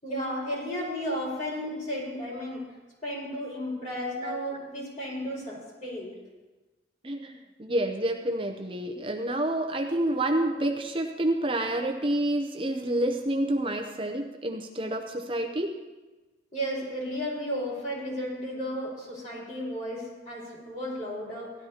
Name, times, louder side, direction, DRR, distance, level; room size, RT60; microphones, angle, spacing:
voice 1, 0.0-2.6 3.0-6.2 16.5-21.5, equal, 40° left, -5 dB, 5.4 m, -33 dB
voice 2, 7.0-15.7, right 1 dB, 30° right, 4 dB, 0.6 m, -28 dB
17.5 x 13.0 x 2.9 m, 1.2 s
head